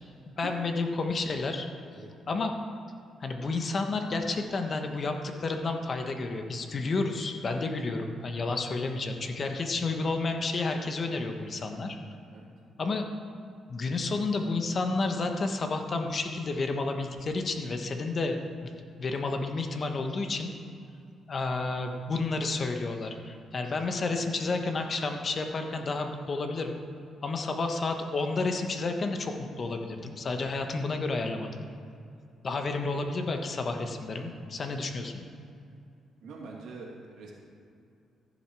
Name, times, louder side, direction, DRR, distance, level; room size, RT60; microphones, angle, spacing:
voice 1, 0.4-1.7 2.3-2.5 3.2-12.0 12.8-13.1 13.7-18.7 19.0-20.5 21.3-26.8 27.2-31.6 32.4-35.2, left 3 dB, 45° left, 5 dB, 1.2 m, -31 dB
voice 2, 36.2-37.3, right 4 dB, 75° right, -1 dB, 2.4 m, -44 dB
14.5 x 7.6 x 4.8 m, 2.5 s
cardioid pair, 90°, 0 cm